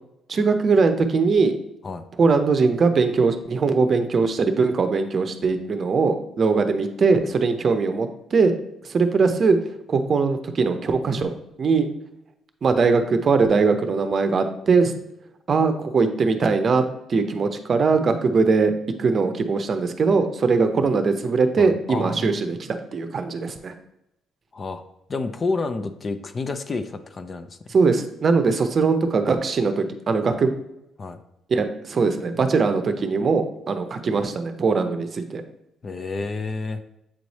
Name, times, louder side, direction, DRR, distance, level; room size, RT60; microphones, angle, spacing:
voice 1, 0.3-1.5 2.2-8.5 8.9-9.6 9.9-11.3 11.6-11.9 12.6-14.9 15.5-16.8 17.1-18.7 19.0-23.7 27.7-30.5 31.5-35.4, right 4 dB, 45° right, 8 dB, 0.6 m, -21 dB
voice 2, 21.6-22.3 24.5-24.8 25.1-27.5 31.0-31.2 35.8-36.8, left 3 dB, 35° left, 9 dB, 0.5 m, -29 dB
7.6 x 3.2 x 4.1 m, 0.84 s
cardioid pair, 100°, 0 cm